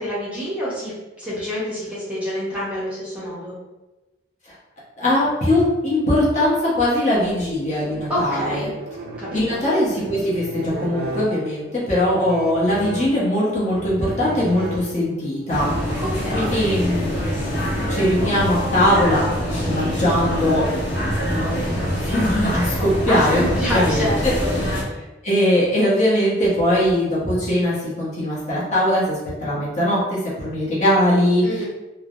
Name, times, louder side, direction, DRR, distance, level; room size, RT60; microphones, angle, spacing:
voice 1, 0.0-3.5 8.1-8.7 9.2-10.1 16.0-16.5 23.1-24.5 31.4-31.6, equal, 5° right, -8 dB, 0.7 m, -27 dB
voice 2, 5.0-8.7 9.3-15.7 16.3-17.5 17.9-20.6 20.9-23.4 23.7-24.8 25.2-31.4, left 1 dB, 40° left, -7 dB, 0.9 m, -21 dB
sound 1, 7.8-15.3, right 1 dB, 55° right, 0.3 m, -34 dB
sound 2, 15.5-24.8, equal, 70° left, 0.7 m, -24 dB
3.2 x 2.0 x 2.5 m, 1.1 s
head